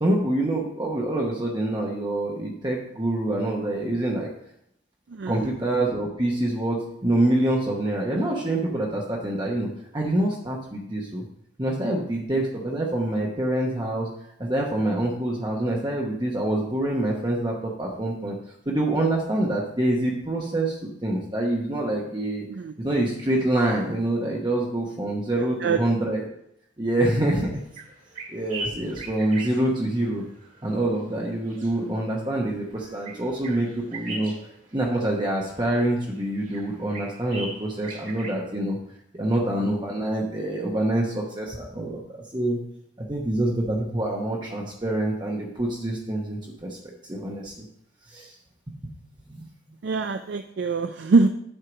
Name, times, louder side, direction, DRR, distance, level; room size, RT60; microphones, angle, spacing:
voice 1, 0.0-4.3 5.3-9.7 9.9-11.2 11.6-14.1 14.4-18.4 18.7-22.4 22.8-26.2 26.8-27.5 28.3-30.2 30.6-34.3 34.7-38.8 39.1-42.6 43.1-46.8 47.0-47.6 48.1-48.3 48.7-48.8 49.3-49.5, right 1 dB, 20° right, -2 dB, 0.9 m, -26 dB
voice 2, 5.1-5.5 22.5-22.7 25.6-25.8 49.8-51.3, right 4 dB, 60° right, 8 dB, 0.4 m, -23 dB
sound 1, 27.5-38.3, right 2 dB, 40° right, 1.9 m, -40 dB
7.8 x 4.6 x 6.1 m, 0.75 s
head